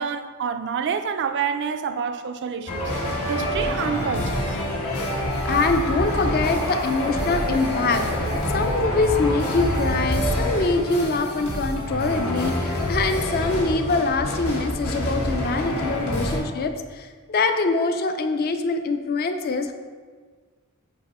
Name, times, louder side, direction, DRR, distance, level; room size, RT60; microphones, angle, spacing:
voice 1, 0.0-4.6 16.1-16.2, right 6 dB, 55° right, 0.4 m, -28 dB
sound 1, 2.7-16.4, equal, 80° left, 1.2 m, -26 dB
voice 2, 5.4-19.7, left 3 dB, 45° left, 0.4 m, -24 dB
8.3 x 3.0 x 4.2 m
head